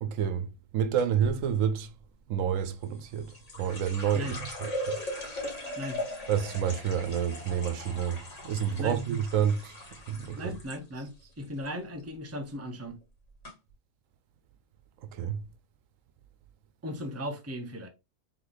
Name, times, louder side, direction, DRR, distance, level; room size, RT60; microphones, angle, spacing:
voice 1, 0.0-1.9 2.3-5.0 6.3-9.7 10.1-10.4 15.1-15.4, right 8 dB, 85° right, 1.0 m, -29 dB
sound 1, 1.0-1.4 2.8-10.8 11.1-11.7 12.0-12.3 13.0-13.1 13.4-13.5, left 1 dB, 70° left, 2.0 m, -39 dB
voice 2, 10.3-13.0 16.8-17.9, equal, 15° right, 0.7 m, -37 dB
3.6 x 3.2 x 3.8 m
omnidirectional pair, 1.3 m